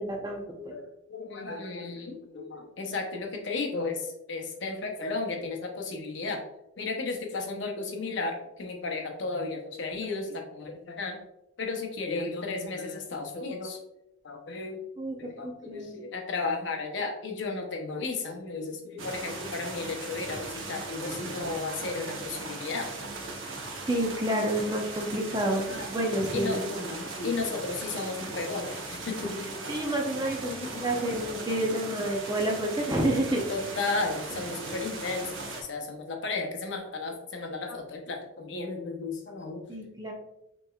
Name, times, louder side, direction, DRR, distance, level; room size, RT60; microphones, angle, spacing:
voice 1, 0.0-0.4 15.0-15.2 15.4-16.0 23.8-26.6 29.7-30.5 30.8-33.4 39.7-40.1, right 1 dB, 20° right, 1 dB, 0.6 m, -29 dB
voice 2, 0.6-6.4 6.8-11.2 11.6-13.8 14.2-14.8 15.2-22.9 25.7-25.9 26.3-29.9 30.5-30.9 32.3-32.4 32.7-32.8 33.5-39.6, left 3 dB, 60° left, 2 dB, 0.8 m, -34 dB
sound 1, 19.0-35.6, right 3 dB, 80° right, 0.9 m, -38 dB
6.2 x 3.1 x 2.4 m, 0.86 s
head